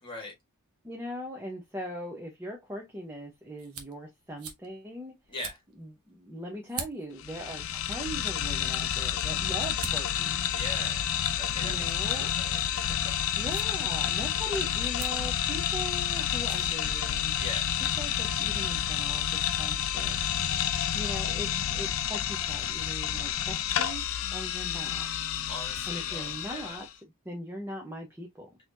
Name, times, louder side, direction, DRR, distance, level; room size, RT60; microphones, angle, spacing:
voice 1, 0.0-0.3 5.3-5.6 10.5-11.1 11.4-13.1 17.4-17.7 25.5-26.8, left 2 dB, 25° left, 1.5 m, -41 dB
voice 2, 0.8-5.1 5.8-10.4 11.6-12.3 13.4-17.3 17.8-20.2 20.9-24.0 24.3-25.1 25.9-26.9 27.2-28.5, equal, 10° right, 0.8 m, -40 dB
sound 1, 2.6-17.4, right 7 dB, 80° right, 1.0 m, -48 dB
sound 2, 7.2-26.9, left 10 dB, 65° left, 0.5 m, -30 dB
4.0 x 3.0 x 2.7 m
head